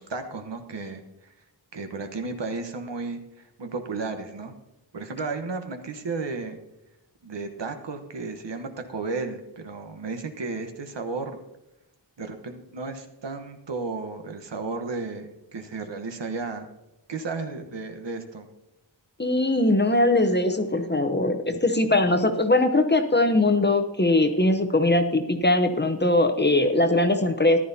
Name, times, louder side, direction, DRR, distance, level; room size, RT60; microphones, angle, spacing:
voice 1, 0.0-1.3 1.7-4.5 4.9-6.6 7.2-11.4 12.2-16.7 17.1-18.5, right 3 dB, 70° right, 6 dB, 1.2 m, -33 dB
voice 2, 19.2-27.6, left 2 dB, 25° left, 7 dB, 0.8 m, -21 dB
14.5 x 11.5 x 2.8 m, 0.92 s
wide cardioid pair, 100°, 44 cm